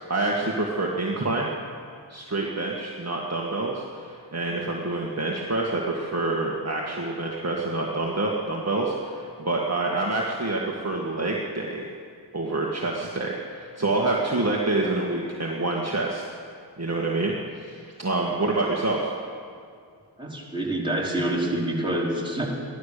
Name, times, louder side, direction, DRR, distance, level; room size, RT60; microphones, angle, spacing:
voice 1, 0.1-1.5 2.1-11.9 12.3-16.2 16.8-19.1, right 2 dB, 35° right, -2 dB, 1.9 m, -27 dB
voice 2, 20.2-22.5, right 1 dB, 10° right, -5 dB, 4.3 m, -27 dB
16.0 x 12.0 x 6.8 m, 2.2 s
cardioid pair, 45°, 47 cm